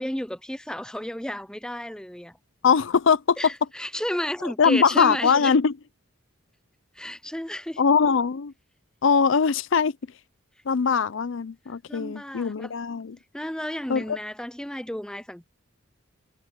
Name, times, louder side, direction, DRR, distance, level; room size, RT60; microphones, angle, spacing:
voice 1, 0.0-2.4 3.4-5.5 7.0-7.8 11.9-12.7 13.3-15.5, equal, 5° left, 0.5 m, -32 dB
voice 2, 2.6-3.4 4.4-5.7 7.8-8.5 9.0-9.9 10.7-13.2 13.9-14.2, left 6 dB, 60° left, 0.5 m, -21 dB
head